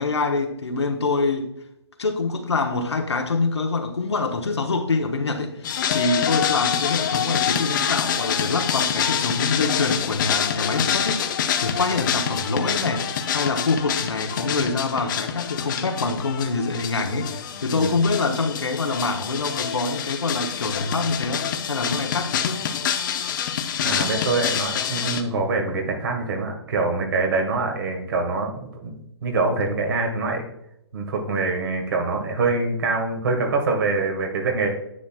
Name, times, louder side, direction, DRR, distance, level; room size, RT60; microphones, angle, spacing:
voice 1, 0.0-1.5 2.0-22.6, left 3 dB, 80° left, 1.2 m, -25 dB
sound 1, 5.6-25.2, left 8 dB, 45° left, 0.7 m, -26 dB
voice 2, 17.7-18.0 23.8-29.0 29.2-30.4 30.9-34.7, right 3 dB, 55° right, 1.9 m, -24 dB
9.9 x 8.4 x 2.3 m
figure-of-eight pair, 130°, 14 cm